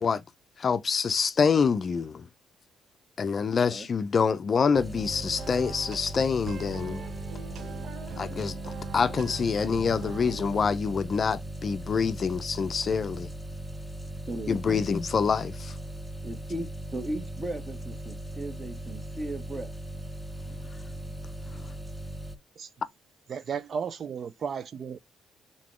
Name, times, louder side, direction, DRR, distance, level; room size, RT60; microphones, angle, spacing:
voice 1, 0.6-2.3 3.2-7.0 8.2-13.3 14.5-15.8 21.6-21.7, left 6 dB, 45° left, 0.4 m, -26 dB
sound 1, 4.7-22.4, right 1 dB, 5° right, 0.7 m, -39 dB
sound 2, 4.9-10.7, right 5 dB, 70° right, 0.9 m, -42 dB
voice 2, 14.3-14.8 16.2-19.7, right 1 dB, 30° right, 1.4 m, -36 dB
voice 3, 23.3-25.0, right 6 dB, 55° right, 0.3 m, -34 dB
4.0 x 3.8 x 3.0 m
cardioid pair, 90°, 0 cm